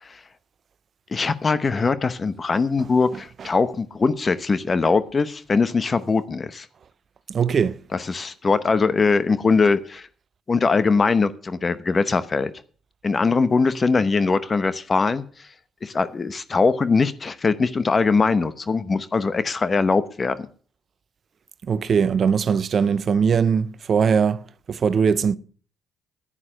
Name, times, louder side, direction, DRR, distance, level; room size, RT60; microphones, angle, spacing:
voice 1, 1.1-6.7 7.9-10.1 10.5-12.5 13.0-15.5 15.8-20.5, left 4 dB, 35° left, 0.9 m, -21 dB
voice 2, 7.3-7.8 21.7-25.4, right 6 dB, 50° right, 0.7 m, -20 dB
10.0 x 9.7 x 6.3 m
supercardioid pair, 60°, 0 cm